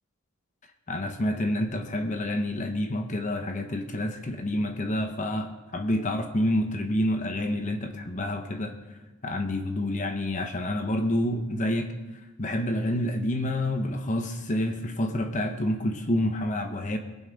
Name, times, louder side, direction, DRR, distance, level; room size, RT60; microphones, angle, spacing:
voice 1, 0.9-8.8 9.2-11.9 12.4-17.0, left 1 dB, 35° left, 6 dB, 0.8 m, -28 dB
22.5 x 7.6 x 5.2 m, 1.2 s
head